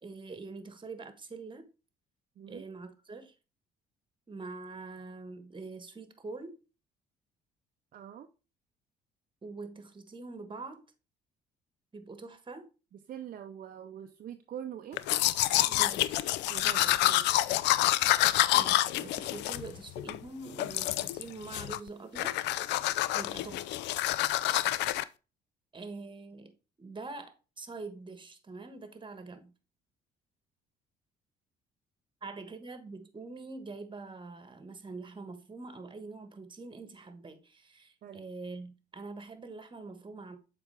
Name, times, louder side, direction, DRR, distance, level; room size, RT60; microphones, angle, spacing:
voice 1, 0.0-1.7 2.5-3.3 4.3-6.6 9.4-10.8 11.9-12.7 15.7-16.2 18.5-22.3 23.1-23.6 25.7-26.5 26.8-29.5 32.2-40.4, right 3 dB, 25° right, 1.3 m, -44 dB
voice 2, 7.9-8.3 12.9-15.0 16.5-17.4 23.4-23.6 38.0-38.2, right 9 dB, 50° right, 0.6 m, -44 dB
Domestic sounds home sounds, 15.0-20.2 20.6-21.2 21.5-21.9 22.2-25.0, left 15 dB, 65° left, 0.4 m, -28 dB
7.2 x 4.4 x 3.3 m
hypercardioid pair, 60°, 19 cm